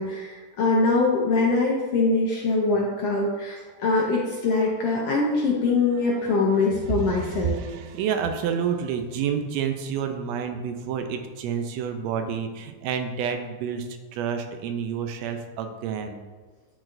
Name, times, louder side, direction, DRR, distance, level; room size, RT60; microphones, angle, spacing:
voice 1, 0.0-7.5, left 3 dB, 70° left, -2 dB, 1.5 m, -23 dB
voice 2, 6.1-16.2, right 7 dB, 80° right, 6 dB, 1.6 m, -29 dB
10.5 x 4.0 x 2.5 m, 1.3 s
omnidirectional pair, 3.5 m